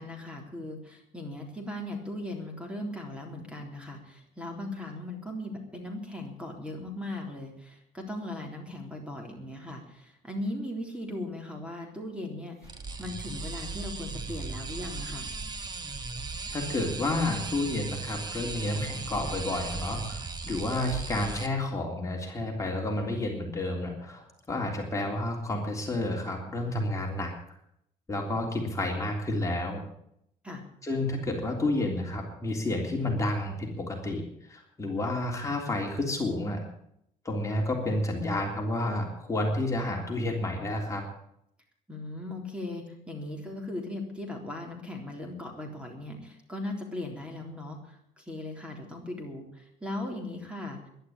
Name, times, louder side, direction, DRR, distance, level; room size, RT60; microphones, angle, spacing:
voice 1, 0.0-12.7 13.0-15.3 30.4-30.6 41.9-50.8, left 1 dB, 5° right, 1 dB, 3.7 m, -38 dB
sound 1, 12.6-21.5, right 3 dB, 30° right, 1.7 m, -37 dB
voice 2, 16.5-27.3 28.1-29.8 30.8-34.2 34.5-36.6 37.2-41.0, left 2 dB, 20° left, 0 dB, 3.4 m, -30 dB
11.5 x 11.5 x 8.8 m, 0.74 s
cardioid pair, 105°, 15 cm